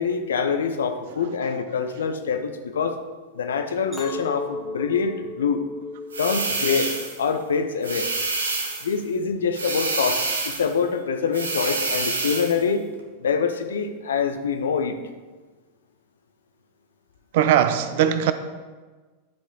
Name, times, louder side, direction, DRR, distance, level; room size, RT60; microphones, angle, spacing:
voice 1, 0.0-3.0 3.3-5.6 6.2-6.9 7.2-8.1 8.8-12.9 13.2-15.0, left 6 dB, 65° left, 0.6 m, -25 dB
voice 2, 1.1-1.9 17.3-18.3, right 10 dB, 50° right, 0.5 m, -22 dB
Chink clink, 3.9-8.3 8.7-9.2, left 3 dB, 5° right, 1.6 m, -37 dB
sound 1, 6.1-7.2 7.8-8.9 9.5-10.7 11.3-12.6, right 3 dB, 70° right, 0.9 m, -27 dB
10.5 x 4.8 x 3.9 m
figure-of-eight pair, 90°, 0 cm